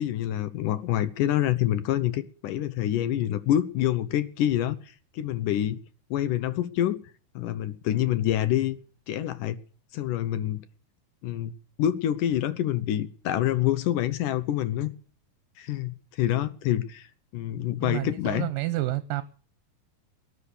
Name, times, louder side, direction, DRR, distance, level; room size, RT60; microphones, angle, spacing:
voice 1, 0.0-4.8 5.1-5.8 6.1-7.0 7.4-8.8 9.1-9.6 9.9-10.6 11.2-11.5 11.8-14.9 15.6-17.1 17.3-18.5, left 12 dB, 75° left, 2.3 m, -26 dB
voice 2, 17.8-19.2, right 17 dB, 75° right, 2.4 m, -29 dB
18.5 x 10.0 x 6.6 m
omnidirectional pair, 4.1 m